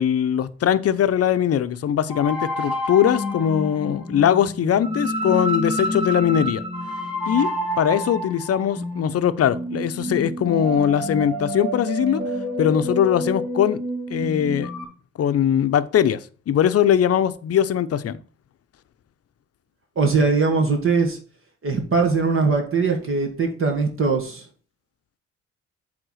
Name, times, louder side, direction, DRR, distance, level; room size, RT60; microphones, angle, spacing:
voice 1, 0.0-6.6 7.3-7.5 7.8-12.2 12.6-13.8 14.1-14.7 15.2-16.2 16.5-18.2, left 9 dB, 50° left, 0.7 m, -21 dB
sound 1, 2.1-14.8, equal, ahead, 3.5 m, -28 dB
voice 2, 20.0-21.2 21.6-24.4, right 4 dB, 45° right, 2.0 m, -21 dB
7.8 x 3.6 x 6.3 m
cardioid pair, 90°, 30 cm